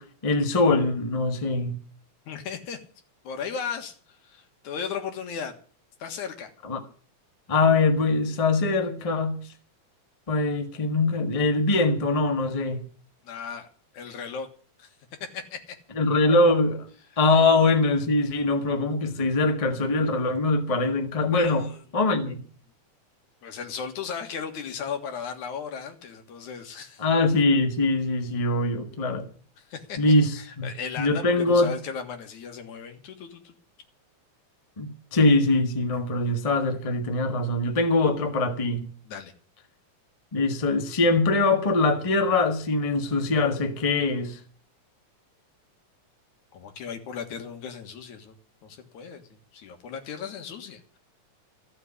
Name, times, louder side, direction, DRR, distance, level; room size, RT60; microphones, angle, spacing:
voice 1, 0.0-1.8 6.6-6.8 7.5-9.4 10.3-12.8 15.9-16.9 17.2-21.7 21.9-22.4 27.0-29.3 30.0-30.7 31.0-31.7 34.8-38.9 40.3-44.4, left 2 dB, 20° left, 0.9 m, -23 dB
voice 2, 2.3-2.8 3.2-3.9 4.2-5.5 6.0-6.5 13.2-13.7 13.9-14.5 14.8-14.9 15.3-15.8 21.3-21.8 23.4-27.0 29.6-30.0 30.4-33.5 39.1-39.3 46.5-48.4 48.6-51.0, left 6 dB, 85° left, 3.1 m, -36 dB
14.5 x 6.6 x 9.8 m
omnidirectional pair, 3.3 m